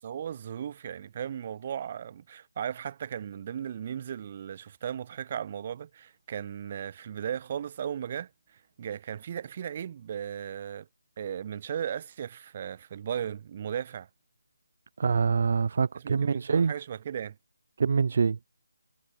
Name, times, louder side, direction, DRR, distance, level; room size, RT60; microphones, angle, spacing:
voice 1, 0.0-8.3 8.8-10.9 11.2-14.1 16.0-17.3, right 9 dB, 30° right, 6.6 m, -36 dB
voice 2, 15.0-16.7 17.8-18.4, right 5 dB, 50° right, 2.7 m, -25 dB
figure-of-eight pair, 165°, 0 cm